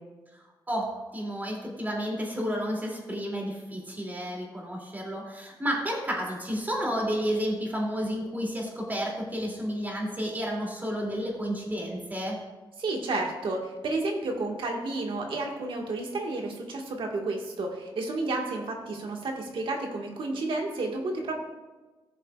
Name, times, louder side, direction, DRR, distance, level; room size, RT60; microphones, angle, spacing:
voice 1, 0.3-12.4, equal, 20° right, -2 dB, 2.6 m, -31 dB
voice 2, 12.8-21.3, right 2 dB, 75° right, 1 dB, 1.6 m, -31 dB
16.0 x 7.1 x 2.4 m, 1.2 s
wide cardioid pair, 110°, 9 cm